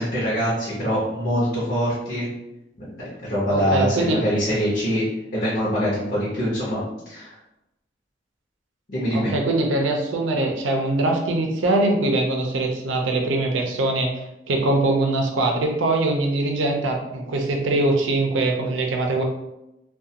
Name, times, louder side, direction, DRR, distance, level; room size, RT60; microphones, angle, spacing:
voice 1, 0.0-2.3 2.8-5.0 5.3-7.3 8.9-9.3, equal, 45° left, -8 dB, 0.7 m, -24 dB
voice 2, 3.5-4.2 9.1-19.2, right 2 dB, 85° right, 2 dB, 0.5 m, -22 dB
2.4 x 2.2 x 2.7 m, 0.90 s
head